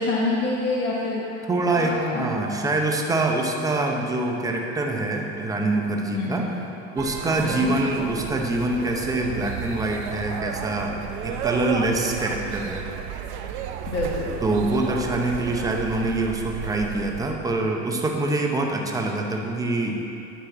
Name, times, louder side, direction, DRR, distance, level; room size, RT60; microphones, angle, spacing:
voice 1, 0.0-2.3 6.1-6.5 7.4-7.7 13.9-14.4, left 2 dB, 30° left, -5 dB, 1.2 m, -27 dB
voice 2, 1.5-6.5 6.9-12.9 14.4-20.0, right 2 dB, 10° right, 1 dB, 0.7 m, -25 dB
sound 1, 7.0-17.4, right 8 dB, 75° right, 0.7 m, -33 dB
10.0 x 4.4 x 7.2 m, 2.7 s
supercardioid pair, 145°, 35 cm